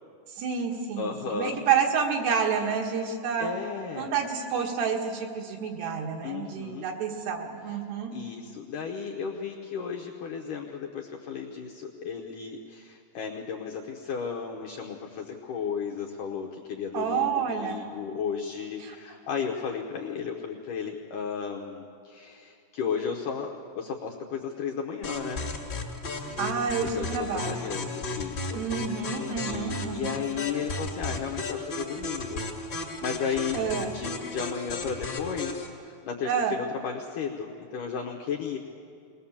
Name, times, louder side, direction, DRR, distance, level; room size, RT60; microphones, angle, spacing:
voice 1, 0.3-3.5 4.0-8.1 16.9-17.8 18.8-19.0 26.4-27.7 28.5-30.2 33.5-33.9 36.3-36.6, right 6 dB, 70° right, 2 dB, 3.6 m, -29 dB
voice 2, 1.0-1.6 3.4-4.1 6.2-6.9 8.1-25.4 26.8-28.6 29.0-32.4 32.7-33.6 33.9-38.6, left 6 dB, 70° left, 0 dB, 2.0 m, -34 dB
sound 1, 25.0-35.7, left 2 dB, 35° left, 1.7 m, -34 dB
21.5 x 20.0 x 7.2 m, 2.3 s
omnidirectional pair, 5.0 m